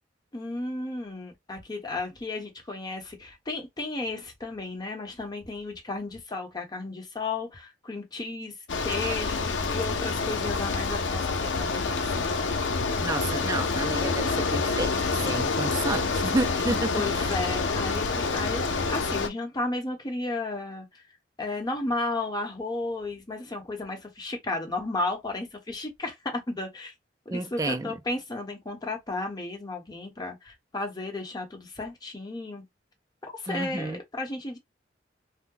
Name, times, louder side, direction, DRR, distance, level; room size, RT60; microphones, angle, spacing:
voice 1, 0.3-8.5 8.8-12.3 16.9-21.0 21.4-26.9 27.2-32.6 33.3-34.6, left 2 dB, 25° left, 1.0 m, -33 dB
Bicycle, 8.7-19.3, left 4 dB, 85° left, 0.6 m, -27 dB
voice 2, 13.0-17.0 27.3-27.9 33.5-34.0, right 2 dB, 20° right, 0.4 m, -30 dB
2.7 x 2.1 x 3.7 m
head